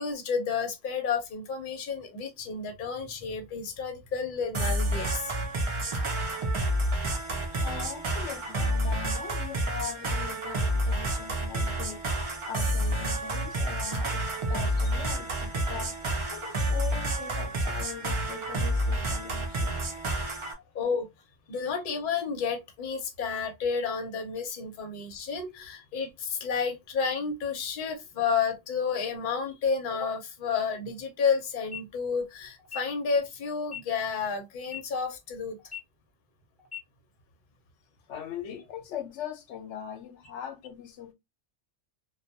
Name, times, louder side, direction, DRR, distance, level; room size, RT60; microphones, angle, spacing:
voice 1, 0.0-5.3 20.7-21.1 21.5-35.6, left 5 dB, 50° left, 0.8 m, -31 dB
sound 1, 4.5-20.5, right 1 dB, 50° right, 0.3 m, -29 dB
voice 2, 7.6-12.0 12.5-16.0 16.3-19.8 21.5-21.6 38.1-41.1, left 9 dB, 85° left, 0.9 m, -40 dB
sound 2, 31.7-31.8 32.6-32.8 33.6-33.8 34.6-34.8 35.6-35.8 36.6-36.8, left 9 dB, ahead, 0.7 m, -39 dB
2.2 x 2.2 x 2.6 m
omnidirectional pair, 1.2 m